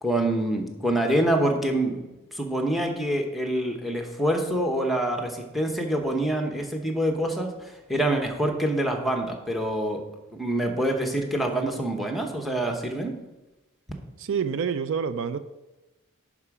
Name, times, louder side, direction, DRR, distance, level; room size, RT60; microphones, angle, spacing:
voice 1, 0.0-2.0 2.3-10.0 10.3-13.1, right 1 dB, ahead, 3 dB, 1.0 m, -26 dB
voice 2, 14.2-15.4, right 6 dB, 60° right, 12 dB, 0.4 m, -27 dB
11.0 x 4.9 x 4.9 m, 1.0 s
head